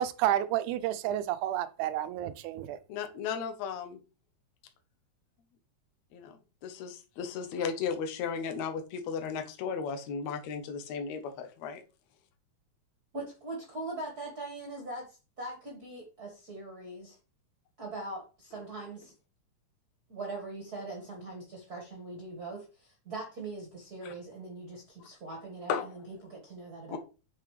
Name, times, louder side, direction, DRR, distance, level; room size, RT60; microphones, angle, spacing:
voice 1, 0.0-2.8, right 12 dB, 85° right, 2.1 m, -30 dB
voice 2, 2.9-4.0 6.1-6.4 6.6-11.8 24.0-24.1 25.7-25.9 26.9-27.0, left 6 dB, 70° left, 2.2 m, -35 dB
voice 3, 13.1-17.2 17.8-19.1 20.1-27.0, right 2 dB, 35° right, 1.8 m, -41 dB
8.4 x 5.7 x 3.2 m
omnidirectional pair, 3.4 m